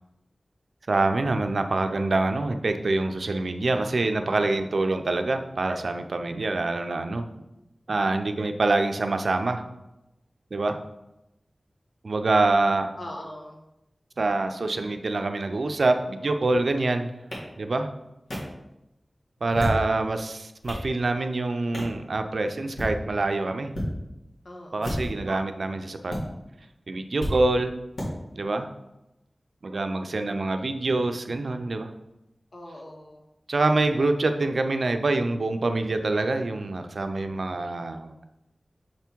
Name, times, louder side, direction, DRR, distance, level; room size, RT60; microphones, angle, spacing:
voice 1, 0.9-7.3 7.9-9.6 10.5-10.8 12.0-12.9 14.2-17.1 17.6-17.9 19.4-23.7 24.7-26.2 26.9-27.7 28.3-28.7 29.6-31.9 33.5-38.1, right 2 dB, 75° right, 6 dB, 0.5 m, -25 dB
voice 2, 13.0-13.6 24.4-25.1 32.5-33.2, left 1 dB, 65° left, 0 dB, 1.2 m, -41 dB
sound 1, 17.3-17.4 18.3-18.4 19.4-19.9 20.4-20.9 21.7-22.0 22.6-22.9 23.7-23.9 24.7-25.2 26.1-26.2 27.2-27.3 28.0-28.1, equal, 90° left, 2.0 m, -31 dB
6.5 x 3.4 x 4.5 m, 0.92 s
wide cardioid pair, 60°, 0 cm